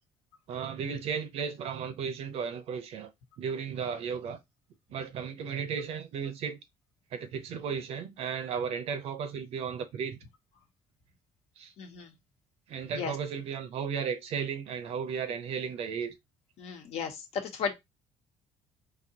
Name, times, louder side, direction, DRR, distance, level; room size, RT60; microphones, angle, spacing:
voice 1, 0.5-3.1 3.4-4.4 4.9-6.6 7.1-10.2 11.6-11.7 12.7-16.1, right 6 dB, 65° right, 0.8 m, -34 dB
voice 2, 11.8-12.1 12.9-13.2 16.6-17.7, left 6 dB, 70° left, 1.1 m, -35 dB
4.2 x 2.8 x 2.8 m
cardioid pair, 110°, 11 cm